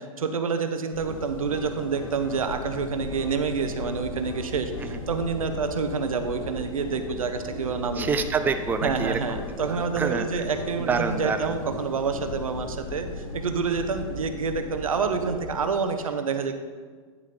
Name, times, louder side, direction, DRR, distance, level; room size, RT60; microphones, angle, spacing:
voice 1, 0.0-8.1 8.8-16.5, right 5 dB, 85° right, 8 dB, 0.7 m, -28 dB
sound 1, 0.9-15.6, left 3 dB, 85° left, 1.1 m, -37 dB
sound 2, 1.0-12.7 14.9-15.7, left 2 dB, 65° left, 1.4 m, -43 dB
voice 2, 7.9-9.4 9.6-10.5 10.8-11.6, right 5 dB, 10° right, 8 dB, 0.4 m, -27 dB
9.3 x 5.3 x 3.9 m, 1.6 s
hypercardioid pair, 105°, 17 cm